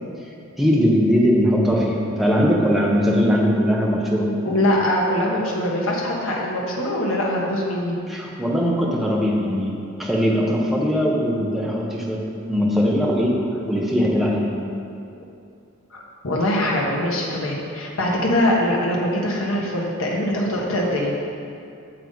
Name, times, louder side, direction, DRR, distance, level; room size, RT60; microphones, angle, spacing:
voice 1, 0.6-4.3 8.1-9.7 10.0-13.4 13.6-14.5, equal, ahead, -4 dB, 1.1 m, -20 dB
voice 2, 4.4-8.0 15.9-21.2, left 1 dB, 70° left, -3 dB, 1.4 m, -22 dB
9.1 x 6.9 x 4.0 m, 2.5 s
head